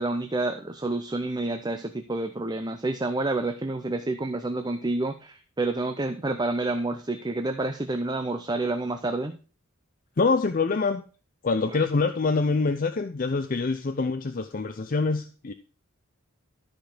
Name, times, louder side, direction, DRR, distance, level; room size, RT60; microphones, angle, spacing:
voice 1, 0.0-9.4 11.7-11.8, right 2 dB, 20° right, 0.6 m, -29 dB
voice 2, 10.2-11.0 11.4-15.5, left 4 dB, 40° left, 0.5 m, -25 dB
12.5 x 5.2 x 5.9 m
head